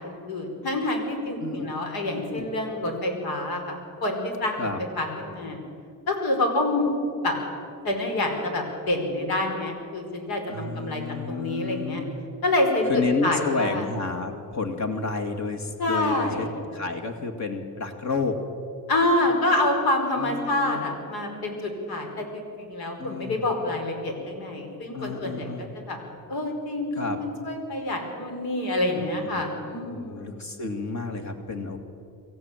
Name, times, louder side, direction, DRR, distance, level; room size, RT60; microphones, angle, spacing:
voice 1, 0.0-4.7 5.0-5.6 6.1-6.8 7.2-7.4 7.8-11.0 11.3-12.0 12.4-12.8 13.2-13.8 15.8-16.5 18.9-25.5 25.7-26.0 26.3-30.4, left 1 dB, 85° left, 3 dB, 5.0 m, -27 dB
voice 2, 2.1-2.5 4.6-4.8 10.5-12.1 12.9-16.5 16.7-18.4 20.2-20.9 23.0-23.4 24.9-25.7 26.9-27.2 28.9-31.8, left 4 dB, 50° left, 4 dB, 2.4 m, -31 dB
24.0 x 15.0 x 9.1 m, 2.5 s
cardioid pair, 115°, 36 cm